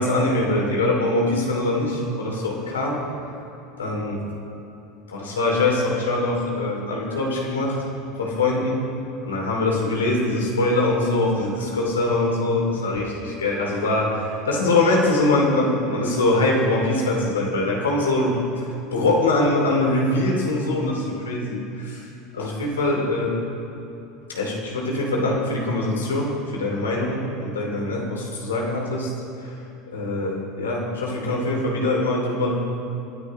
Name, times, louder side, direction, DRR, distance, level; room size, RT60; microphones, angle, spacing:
voice 1, 0.0-3.0 3.8-4.2 5.1-7.8 8.2-8.8 9.2-23.5 24.3-29.1 29.4-29.6 29.9-32.5, left 2 dB, 80° left, -2 dB, 2.8 m, -23 dB
27.0 x 10.0 x 3.2 m, 2.9 s
figure-of-eight pair, 75°, 0 cm